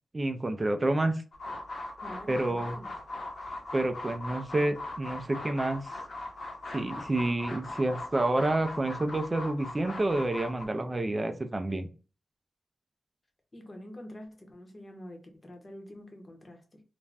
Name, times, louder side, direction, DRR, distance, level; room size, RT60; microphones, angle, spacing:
voice 1, 0.1-1.1 2.3-2.8 3.7-5.9 6.7-11.9, right 2 dB, 25° right, 0.4 m, -29 dB
sound 1, 1.3-10.7, left 2 dB, 65° left, 0.9 m, -40 dB
voice 2, 2.0-2.9 13.5-16.8, left 1 dB, 30° left, 0.8 m, -46 dB
2.5 x 2.1 x 3.3 m
wide cardioid pair, 105°, 0 cm